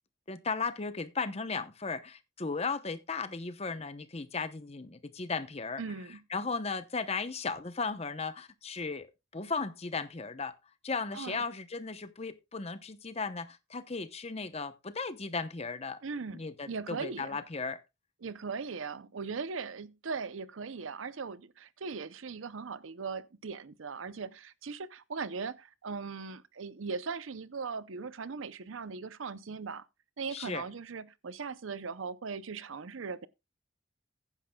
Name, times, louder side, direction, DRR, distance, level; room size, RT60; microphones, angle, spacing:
voice 1, 0.3-5.8 6.3-9.1 9.3-10.5 10.8-16.0 16.3-17.8 30.3-30.6, left 4 dB, 30° left, 0.8 m, -36 dB
voice 2, 5.8-6.2 11.1-11.4 16.0-17.4 18.2-29.9 30.2-33.3, right 5 dB, 85° right, 0.6 m, -39 dB
15.0 x 10.0 x 2.3 m
head